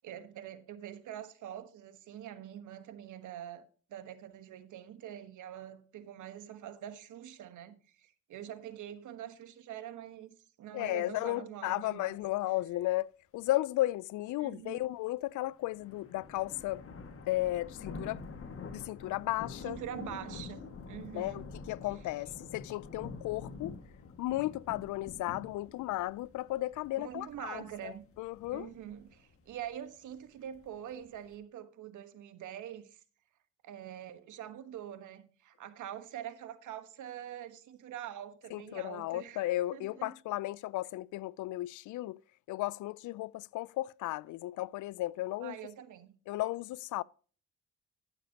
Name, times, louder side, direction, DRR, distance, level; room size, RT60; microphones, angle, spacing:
voice 1, 0.0-12.2 14.4-14.8 19.6-21.4 27.0-28.1 28.5-33.0 33.6-39.4 39.7-40.1 45.4-46.1, right 10 dB, 75° right, 1.3 m, -45 dB
voice 2, 10.7-16.8 17.3-18.2 18.7-19.8 21.1-23.8 24.2-28.7 38.5-42.2 42.5-45.6 46.3-47.0, left 16 dB, 80° left, 0.5 m, -34 dB
sound 1, 15.4-31.3, left 4 dB, 45° left, 1.9 m, -47 dB
14.5 x 7.2 x 2.8 m
cardioid pair, 90°, 30 cm